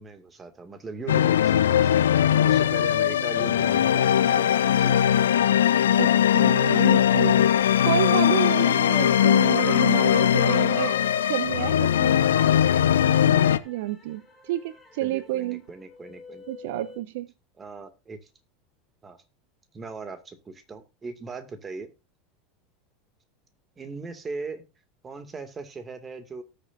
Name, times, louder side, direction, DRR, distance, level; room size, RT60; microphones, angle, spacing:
voice 1, 0.0-2.1 2.4-5.0 7.1-7.5 15.0-16.5 17.6-18.3 19.0-19.2 19.7-21.9 23.8-24.6 25.0-26.4, right 4 dB, 25° right, 2.2 m, -39 dB
sound 1, 1.1-13.6, left 10 dB, 70° left, 0.6 m, -20 dB
sound 2, 5.9-13.3, right 8 dB, 45° right, 1.4 m, -44 dB
voice 2, 6.0-7.5 7.9-10.9 11.3-12.2 13.6-15.6 16.5-17.3, right 15 dB, 60° right, 0.4 m, -30 dB
sound 3, 8.7-17.0, left 4 dB, 15° left, 3.8 m, -50 dB
18.0 x 6.9 x 2.6 m
figure-of-eight pair, 80°, 0 cm